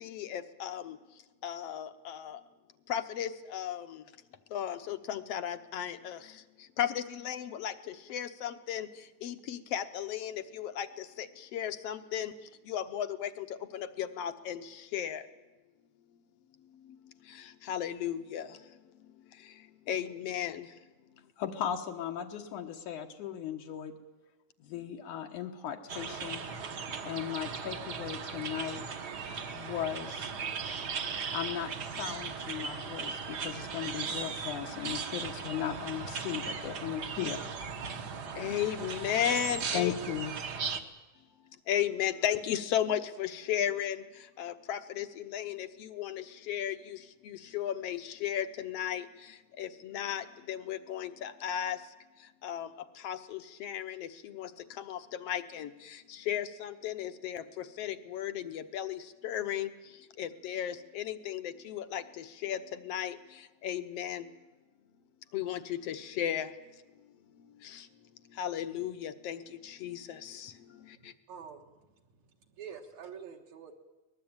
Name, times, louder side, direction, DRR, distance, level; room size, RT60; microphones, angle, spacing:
voice 1, 0.0-1.0 1.4-2.4 2.9-3.9 4.5-6.2 6.8-7.7 8.1-8.9 9.2-10.9 11.5-12.3 12.7-13.5 13.7-14.6 14.9-15.2 17.7-18.4 19.9-20.6 38.4-39.9 41.7-44.0 44.4-45.1 45.3-45.7 46.0-46.8 47.5-49.0 49.6-51.8 52.4-52.7 53.0-54.1 54.4-54.5 54.9-55.0 55.3-55.7 56.3-57.4 57.8-59.0 59.2-59.7 60.2-62.0 62.4-62.6 62.9-63.2 63.6-64.2 65.3-65.6 65.9-66.5 68.4-69.4 69.8-70.0, left 10 dB, 65° left, 11 dB, 1.7 m, -34 dB
voice 2, 21.4-23.9 24.6-26.4 27.0-28.8 29.5-30.3 31.3-37.4 39.7-40.3, left 10 dB, 85° left, 2 dB, 2.8 m, -37 dB
sound 1, 25.9-40.8, right 5 dB, 50° right, 1.4 m, -37 dB
voice 3, 71.0-73.7, right 7 dB, 70° right, 2 dB, 2.7 m, -48 dB
23.0 x 19.5 x 8.8 m, 1.1 s
omnidirectional pair, 3.4 m